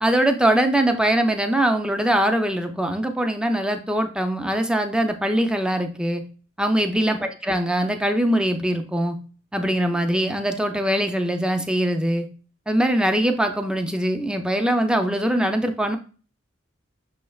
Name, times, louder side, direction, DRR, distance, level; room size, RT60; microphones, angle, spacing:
voice 1, 0.0-6.2 6.6-9.2 9.5-12.3 12.7-16.0, right 1 dB, 5° right, 6 dB, 0.4 m, -22 dB
6.0 x 3.2 x 2.3 m, 0.38 s
head